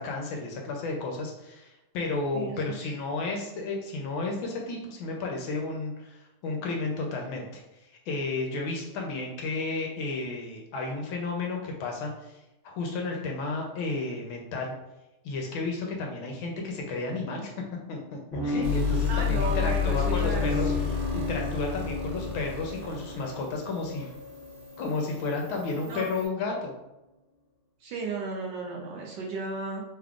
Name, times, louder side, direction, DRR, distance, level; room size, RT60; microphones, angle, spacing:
voice 1, 0.0-7.6 7.9-12.4 12.6-14.7 15.2-17.5 17.9-24.1 24.8-26.7, left 3 dB, 75° left, 1 dB, 1.3 m, -32 dB
voice 2, 2.3-2.9 19.1-20.7 25.9-26.1 27.8-29.8, right 3 dB, 75° right, -1 dB, 1.0 m, -34 dB
sound 1, 18.3-25.6, left 1 dB, 45° left, 0.7 m, -34 dB
sound 2, 18.6-26.3, left 8 dB, 60° right, 1.7 m, -32 dB
3.5 x 3.5 x 2.3 m, 0.96 s
omnidirectional pair, 2.4 m